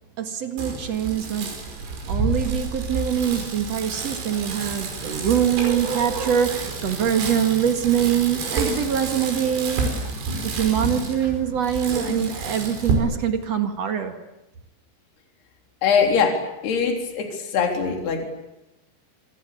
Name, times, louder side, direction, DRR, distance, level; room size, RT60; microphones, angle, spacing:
voice 1, 0.2-10.0 10.4-14.2, right 9 dB, 50° right, 2.0 m, -24 dB
Bicycle, 0.6-12.9, right 3 dB, 90° right, 7.8 m, -30 dB
voice 2, 15.8-18.3, left 6 dB, 55° left, 5.5 m, -22 dB
26.5 x 26.0 x 8.6 m
omnidirectional pair, 5.8 m